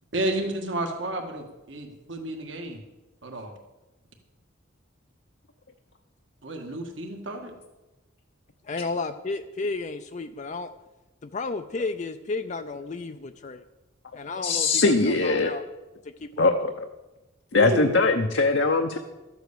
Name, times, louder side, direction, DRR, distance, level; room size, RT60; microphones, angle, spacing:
voice 1, 0.1-2.8 3.2-3.5 6.4-7.5 17.5-18.0, right 1 dB, 65° right, 3 dB, 1.6 m, -31 dB
voice 2, 8.7-10.7 11.2-13.6 14.1-15.6 16.4-16.5, left 3 dB, 35° left, 8 dB, 0.4 m, -32 dB
voice 3, 14.4-15.5 16.4-16.5 17.5-19.0, left 3 dB, 60° left, 4 dB, 0.8 m, -21 dB
13.0 x 8.0 x 6.8 m, 1.1 s
head